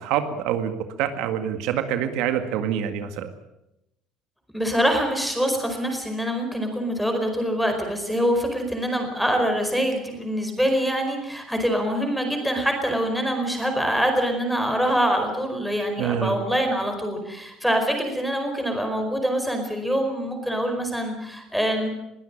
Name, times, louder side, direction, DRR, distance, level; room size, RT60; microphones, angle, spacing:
voice 1, 0.0-3.3 16.0-16.4, right 9 dB, 70° right, 8 dB, 1.9 m, -26 dB
voice 2, 4.5-21.9, equal, ahead, 5 dB, 4.9 m, -24 dB
22.0 x 16.5 x 8.7 m, 0.88 s
cardioid pair, 150°, 0 cm